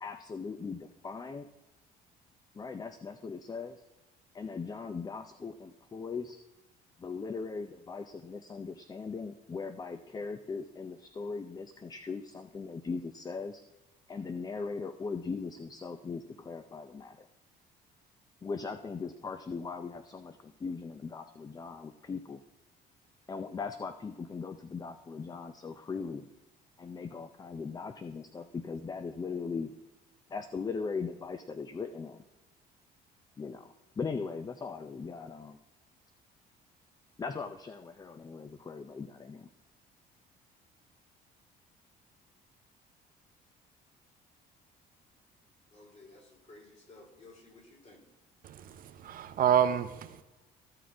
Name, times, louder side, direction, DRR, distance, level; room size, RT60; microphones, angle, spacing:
voice 1, 0.0-1.5 2.5-3.8 4.3-6.4 7.0-13.6 14.1-17.3 18.4-22.4 23.3-26.3 26.8-29.7 30.3-32.2 33.4-35.6 37.2-39.5, left 4 dB, 20° left, 9 dB, 0.5 m, -39 dB
voice 2, 45.7-48.0, left 2 dB, 40° left, 0 dB, 3.1 m, -55 dB
voice 3, 48.4-50.2, right 9 dB, 55° right, 10 dB, 0.6 m, -28 dB
14.0 x 6.3 x 4.6 m, 1.1 s
cardioid pair, 110°, 17 cm